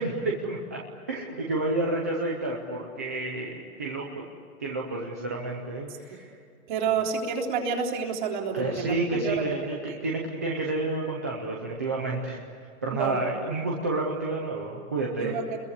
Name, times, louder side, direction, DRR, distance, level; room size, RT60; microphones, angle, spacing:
voice 1, 0.0-4.1 4.6-6.4 8.5-12.4 12.8-15.4, right 2 dB, 10° right, -2 dB, 0.6 m, -30 dB
voice 2, 6.7-9.4 9.6-10.0 12.8-13.2 15.2-15.6, right 6 dB, 30° right, 1 dB, 3.5 m, -29 dB
29.0 x 22.0 x 8.2 m, 2.3 s
hypercardioid pair, 180°, 45 cm